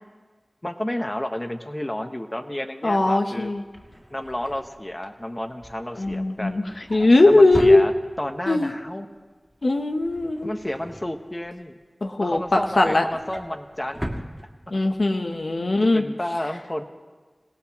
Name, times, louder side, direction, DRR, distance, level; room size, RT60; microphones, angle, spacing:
voice 1, 0.6-3.5 4.1-6.6 7.2-7.9 8.2-9.1 10.4-11.8 12.2-14.2 15.3-16.8, left 1 dB, 25° left, 6 dB, 1.1 m, -31 dB
voice 2, 2.8-3.6 6.0-6.6 6.9-7.8 8.5-8.7 9.6-10.5 12.0-13.0 14.7-16.0, left 2 dB, 75° left, 5 dB, 0.8 m, -19 dB
Drawer open or close, 3.4-8.5 8.9-9.2 9.4-11.7 12.1-15.1 15.4-15.6 15.9-16.0, equal, ahead, 2.0 m, -39 dB
27.5 x 17.5 x 3.0 m, 1.4 s
wide cardioid pair, 50°, 0 cm